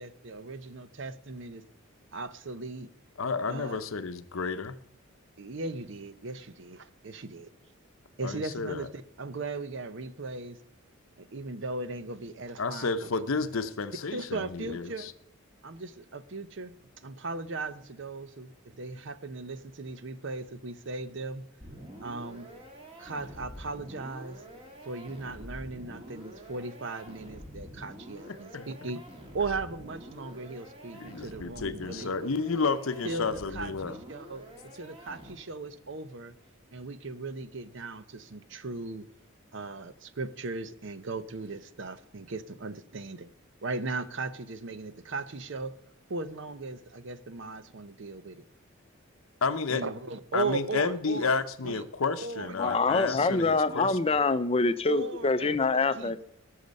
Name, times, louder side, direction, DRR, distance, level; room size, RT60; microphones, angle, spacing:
voice 1, 0.0-1.6 2.1-2.9 3.5-3.8 5.4-7.5 8.2-10.6 11.2-13.1 14.1-15.1 15.6-21.5 22.0-22.5 23.0-24.4 24.8-29.0 29.3-32.1 33.0-36.3 36.7-39.1 39.5-43.3 43.6-45.8 46.1-48.4 49.7-51.8 52.2-53.5 54.9-55.6 56.0-56.3, right 3 dB, 55° right, 0.7 m, -38 dB
voice 2, 3.2-4.8 8.2-8.9 12.6-15.1 28.3-28.9 30.9-34.0 49.4-49.8 50.3-54.2, left 4 dB, 70° left, 0.7 m, -31 dB
sound 1, 21.6-35.7, equal, 25° right, 1.9 m, -47 dB
voice 3, 52.6-56.3, left 3 dB, 25° left, 0.5 m, -25 dB
18.5 x 6.6 x 5.3 m
head